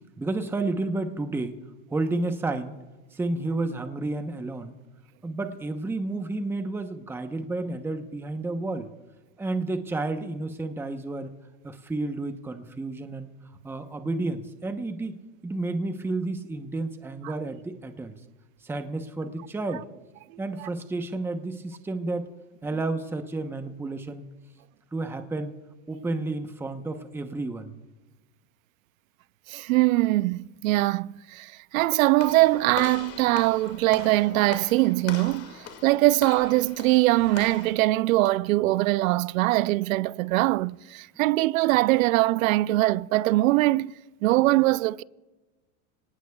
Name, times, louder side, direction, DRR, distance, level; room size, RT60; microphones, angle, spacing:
voice 1, 0.2-1.6 1.9-2.8 3.1-4.7 5.2-8.9 9.4-11.3 11.6-13.3 13.6-18.1 18.6-19.9 20.4-22.3 22.6-24.3 24.9-25.5 25.9-27.7, right 2 dB, 5° right, 0.8 m, -31 dB
voice 2, 29.5-43.9 44.2-45.0, right 18 dB, 70° right, 0.6 m, -22 dB
Walk footsteps / Slam, 32.2-37.7, left 7 dB, 35° left, 2.3 m, -41 dB
27.0 x 18.5 x 2.3 m
supercardioid pair, 140°, 42 cm